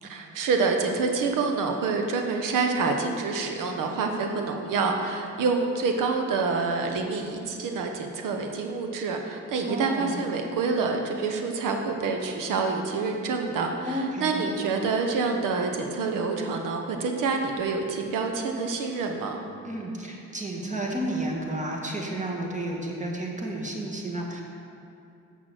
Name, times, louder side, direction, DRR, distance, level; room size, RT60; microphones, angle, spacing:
voice 1, 0.0-19.4, right 4 dB, 70° right, 4 dB, 1.1 m, -27 dB
voice 2, 9.7-10.1 13.9-14.5 19.6-24.4, right 1 dB, 20° right, -1 dB, 1.8 m, -31 dB
7.2 x 6.2 x 6.3 m, 2.7 s
supercardioid pair, 65°, 33 cm